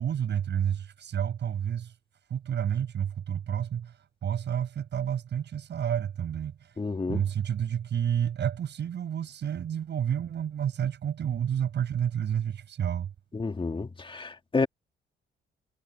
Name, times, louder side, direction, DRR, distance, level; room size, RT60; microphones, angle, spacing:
voice 1, 0.0-1.9 2.3-6.8 7.1-13.1, right 9 dB, 60° right, 7.7 m, -30 dB
voice 2, 6.8-7.2 13.3-14.7, left 4 dB, 25° left, 2.0 m, -30 dB
cardioid pair, 90°, 20 cm